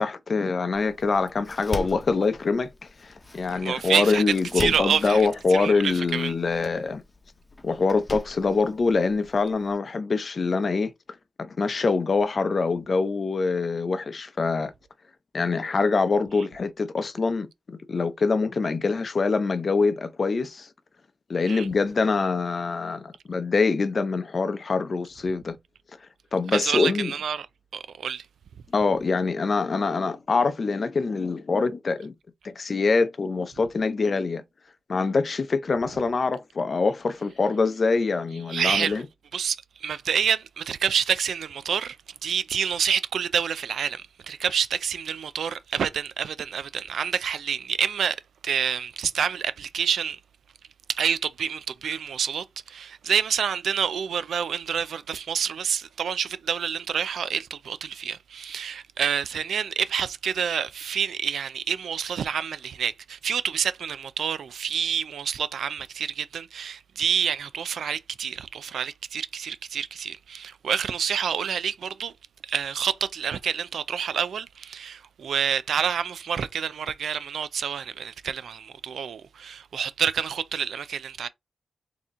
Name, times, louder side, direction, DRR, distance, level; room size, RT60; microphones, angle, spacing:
voice 1, 0.0-7.0 7.6-10.9 11.4-14.7 15.3-20.7 21.3-25.6 26.3-27.1 28.7-32.1 32.4-34.4 34.9-39.1, left 4 dB, 50° left, 0.6 m, -24 dB
Door, 0.7-9.7, left 2 dB, 25° left, 0.9 m, -41 dB
voice 2, 3.6-4.2 4.6-6.3 21.5-21.7 26.5-27.5 27.7-28.2 38.5-39.0 39.3-42.0 42.2-50.2 50.9-72.1 72.4-81.3, right 7 dB, 80° right, 0.4 m, -28 dB
4.0 x 2.9 x 3.6 m
cardioid pair, 65°, 0 cm